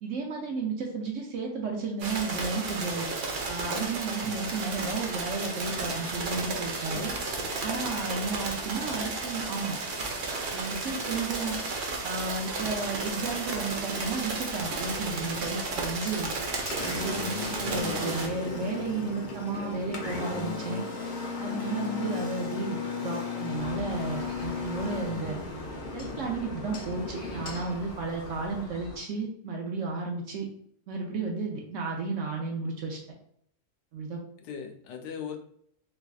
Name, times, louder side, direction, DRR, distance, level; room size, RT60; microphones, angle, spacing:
voice 1, 0.0-3.1 3.5-7.1 7.6-9.8 10.5-11.6 12.0-16.3 16.8-20.8 21.4-25.4 25.9-30.5 30.9-33.0 33.9-34.2, right 4 dB, 65° right, 1 dB, 0.8 m, -33 dB
sound 1, 2.0-18.3, right 3 dB, 80° right, 0.4 m, -33 dB
voice 2, 6.9-7.5 8.0-8.1 17.7-18.3 19.6-19.8 34.4-35.4, left 7 dB, 90° left, 4 dB, 1.2 m, -40 dB
Engine, 14.6-28.6, left 4 dB, 65° left, 0.4 m, -36 dB
sound 2, 23.6-29.0, left 1 dB, 45° left, 0.9 m, -44 dB
3.4 x 3.2 x 2.3 m, 0.67 s
omnidirectional pair, 1.7 m